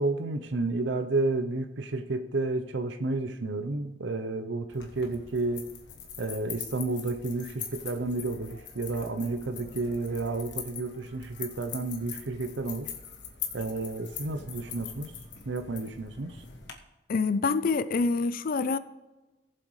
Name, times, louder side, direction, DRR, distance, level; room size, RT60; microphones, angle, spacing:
voice 1, 0.0-5.7 6.2-12.9 13.5-15.1 15.5-16.4, right 2 dB, 65° right, 0.7 m, -31 dB
sound 1, 4.7-16.7, left 7 dB, 65° left, 1.3 m, -42 dB
voice 2, 17.1-18.8, left 4 dB, 50° left, 0.4 m, -26 dB
18.0 x 7.7 x 3.2 m
head